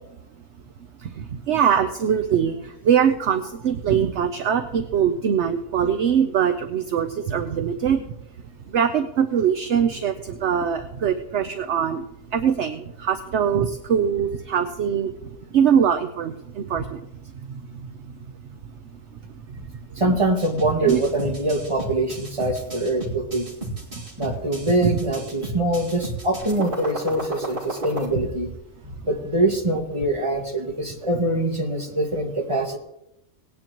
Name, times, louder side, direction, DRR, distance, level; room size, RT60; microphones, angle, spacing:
voice 1, 1.5-2.6 2.8-8.0 8.7-12.0 12.3-15.1 15.5-16.8 20.0-20.2 20.8-21.0 24.8-24.9, right 8 dB, 60° right, 8 dB, 0.9 m, -22 dB
voice 2, 20.0-23.5 24.2-28.5 28.8-32.8, right 2 dB, 20° right, 0 dB, 1.8 m, -24 dB
sound 1, 20.4-28.1, right 1 dB, 40° right, 2.3 m, -33 dB
18.5 x 9.8 x 3.0 m, 0.82 s
omnidirectional pair, 1.5 m